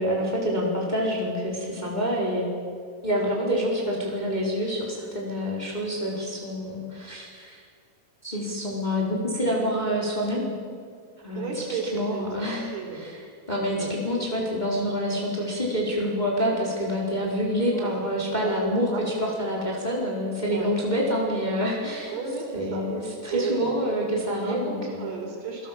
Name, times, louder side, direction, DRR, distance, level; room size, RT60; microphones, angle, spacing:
voice 1, 0.0-2.5 3.0-7.6 8.2-10.5 11.2-12.6 13.0-13.2 13.5-22.1 22.5-25.1, equal, 10° left, -3 dB, 4.1 m, -27 dB
voice 2, 11.4-13.1 13.8-13.9 17.7-18.0 18.3-18.6 18.9-19.0 20.5-20.7 22.1-22.8 23.2-23.9 24.4-25.7, right 4 dB, 65° right, 1 dB, 6.0 m, -33 dB
27.5 x 18.5 x 7.7 m, 2.1 s
omnidirectional pair, 5.0 m